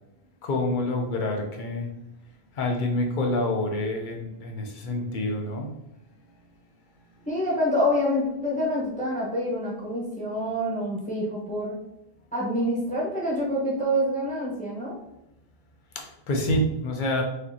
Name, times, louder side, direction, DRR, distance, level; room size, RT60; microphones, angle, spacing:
voice 1, 0.4-1.9 2.6-5.7 15.9-17.2, left 1 dB, 55° left, 2 dB, 0.8 m, -27 dB
voice 2, 7.3-11.7 12.3-15.0, equal, 10° left, -6 dB, 1.0 m, -26 dB
5.0 x 2.6 x 2.7 m, 0.85 s
omnidirectional pair, 1.1 m